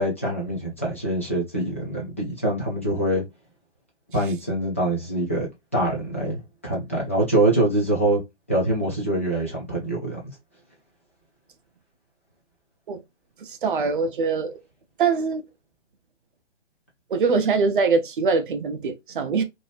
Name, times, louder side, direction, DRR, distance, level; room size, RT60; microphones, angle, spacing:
voice 1, 0.0-3.2 4.1-5.5 5.7-8.2 8.5-10.2, right 1 dB, 10° left, 0.4 m, -24 dB
voice 2, 13.4-14.6 15.0-15.4 17.1-19.4, right 4 dB, 45° right, 0.6 m, -23 dB
2.7 x 2.6 x 3.2 m
hypercardioid pair, 150°, 36 cm